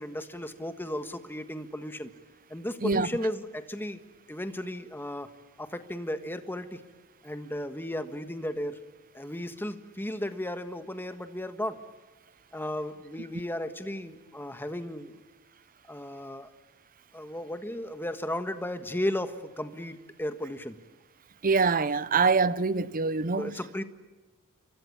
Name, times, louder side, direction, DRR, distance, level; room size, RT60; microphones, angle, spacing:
voice 1, 0.0-2.1 2.5-4.0 4.3-5.3 5.6-6.8 7.2-8.8 9.1-11.8 12.5-15.1 15.9-16.5 17.1-20.8 23.4-23.8, left 1 dB, 10° left, 1.5 m, -35 dB
voice 2, 21.4-23.6, right 4 dB, 40° right, 0.8 m, -25 dB
28.5 x 24.0 x 8.8 m
head